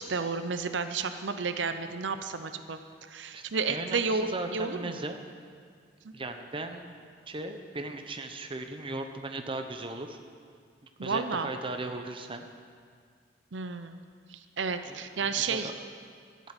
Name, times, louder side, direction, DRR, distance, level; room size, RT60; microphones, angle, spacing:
voice 1, 0.0-2.8 3.1-5.0 6.0-6.1 11.0-11.5 13.5-14.0 14.3-15.7, right 4 dB, 85° right, 9 dB, 0.7 m, -31 dB
voice 2, 3.7-5.2 6.1-6.9 7.3-10.2 11.0-12.5 14.8-15.7, right 2 dB, 30° right, 6 dB, 1.0 m, -37 dB
14.0 x 8.3 x 9.1 m, 2.1 s
head